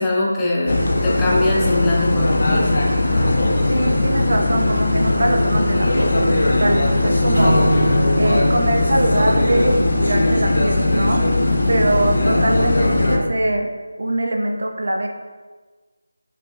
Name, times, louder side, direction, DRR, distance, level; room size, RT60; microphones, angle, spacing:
voice 1, 0.0-2.8, left 1 dB, 10° left, -6 dB, 0.5 m, -21 dB
sound 1, 0.7-13.2, left 2 dB, 60° left, 0.6 m, -18 dB
voice 2, 3.7-7.6 8.2-11.2 11.7-13.7 14.0-15.1, right 1 dB, 65° right, 2 dB, 0.5 m, -22 dB
Acoustic guitar / Strum, 7.3-10.7, equal, 85° left, 1.0 m, -25 dB
5.5 x 2.2 x 2.6 m, 1.3 s
figure-of-eight pair, 165°, 0 cm